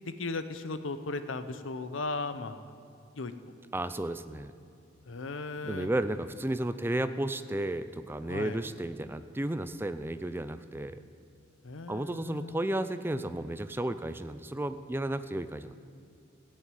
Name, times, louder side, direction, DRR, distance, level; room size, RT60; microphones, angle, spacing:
voice 1, 0.0-2.7 3.1-3.5 5.1-5.9 8.3-8.6 11.6-12.6, left 3 dB, 80° left, 11 dB, 0.8 m, -37 dB
voice 2, 3.7-4.5 5.6-11.0 11.9-15.7, right 1 dB, 10° right, 11 dB, 0.4 m, -33 dB
15.5 x 6.5 x 9.2 m, 2.3 s
head